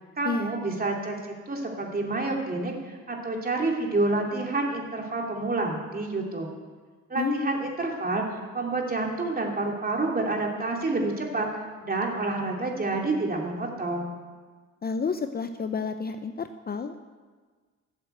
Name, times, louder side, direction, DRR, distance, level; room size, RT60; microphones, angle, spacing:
voice 1, 0.2-1.1 1.5-6.5 7.1-8.2 8.5-11.5 11.8-14.1, right 2 dB, 30° right, 0 dB, 2.9 m, -28 dB
voice 2, 7.2-7.5 14.8-17.0, left 5 dB, 30° left, 8 dB, 0.7 m, -30 dB
12.5 x 7.9 x 8.0 m, 1.5 s
cardioid pair, 90°, 30 cm